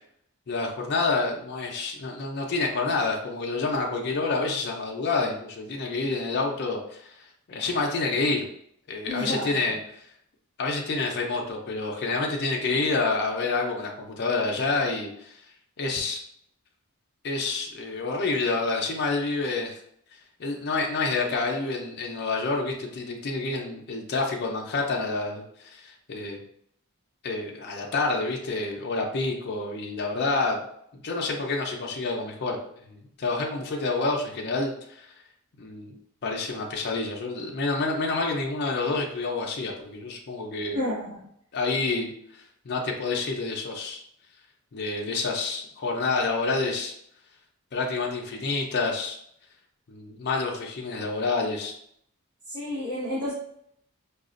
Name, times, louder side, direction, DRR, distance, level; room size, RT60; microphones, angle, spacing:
voice 1, 0.5-8.5 8.9-10.1 10.6-15.4 15.8-16.2 17.2-19.8 20.4-26.4 27.2-30.6 30.9-32.6 32.9-35.1 35.6-35.9 36.2-40.8 41.5-44.0 44.7-46.9 47.7-49.2 49.9-51.7, left 3 dB, 50° left, 0 dB, 0.5 m, -28 dB
voice 2, 9.1-9.7 40.7-41.2 52.5-53.3, left 1 dB, 65° right, -11 dB, 1.3 m, -30 dB
4.8 x 2.3 x 2.5 m, 0.70 s
head